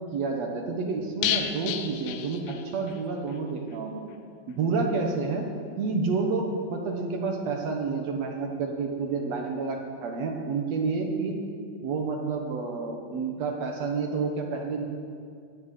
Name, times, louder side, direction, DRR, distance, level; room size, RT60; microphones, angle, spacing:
voice 1, 0.1-4.0 4.5-5.5 5.8-11.4 11.8-14.8, right 4 dB, 60° right, 2 dB, 2.0 m, -29 dB
sound 1, 1.2-3.0 3.3-3.4 3.7-3.8, left 10 dB, 85° left, 2.8 m, -31 dB
18.5 x 7.7 x 8.4 m, 2.3 s
omnidirectional pair, 4.5 m